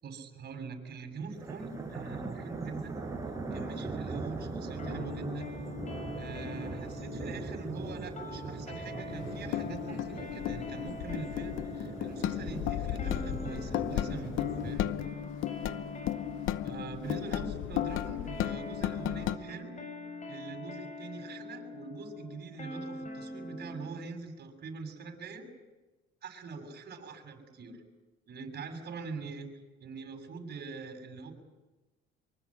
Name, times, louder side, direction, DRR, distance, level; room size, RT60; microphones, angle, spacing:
voice 1, 0.0-2.9 3.5-5.5 6.1-14.9 16.6-19.7 20.3-25.5 26.2-27.8 28.3-29.5 29.8-31.3, right 4 dB, 50° right, 4 dB, 7.2 m, -43 dB
sound 1, 1.3-14.8, right 3 dB, 15° right, 5.9 m, -40 dB
sound 2, 4.8-23.9, left 2 dB, 35° left, 7.2 m, -43 dB
sound 3, 9.1-19.4, left 13 dB, 70° left, 1.0 m, -35 dB
25.0 x 24.0 x 8.9 m, 1.1 s
cardioid pair, 110°, 21 cm